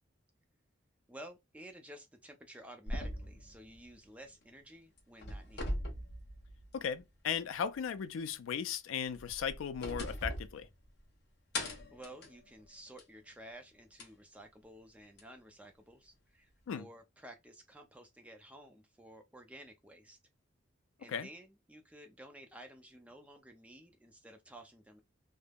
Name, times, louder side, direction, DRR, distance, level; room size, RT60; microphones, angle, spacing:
voice 1, 1.1-5.7 11.9-20.2 21.0-25.0, right 1 dB, 5° right, 0.4 m, -53 dB
sound 1, 2.9-4.6 5.0-7.0 7.3-7.4 9.0-11.1 11.5-13.2 14.0-14.1 15.2-15.3, left 1 dB, 55° left, 0.7 m, -41 dB
voice 2, 6.7-10.7 16.7-16.8 21.1-21.3, left 7 dB, 90° left, 0.3 m, -37 dB
3.3 x 2.0 x 2.2 m
head